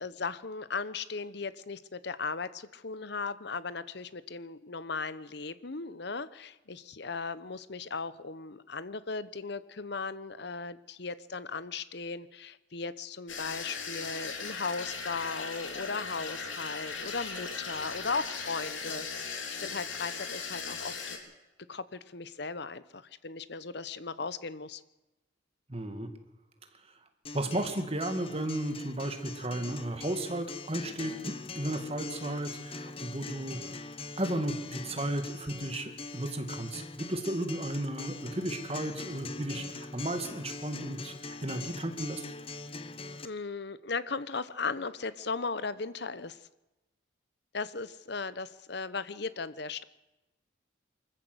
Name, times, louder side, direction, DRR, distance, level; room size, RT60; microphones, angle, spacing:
voice 1, 0.0-21.2 21.7-24.8 43.2-46.5 47.5-49.8, left 4 dB, 55° left, 15 dB, 0.9 m, -37 dB
sound 1, 13.3-21.2, left 5 dB, 75° left, 3.6 m, -38 dB
voice 2, 25.7-26.1 27.3-33.9 34.2-42.2, right 1 dB, 30° right, 7 dB, 2.1 m, -34 dB
Acoustic guitar, 27.3-43.3, left 3 dB, 30° left, 1.0 m, -42 dB
24.0 x 14.5 x 8.0 m, 1.0 s
head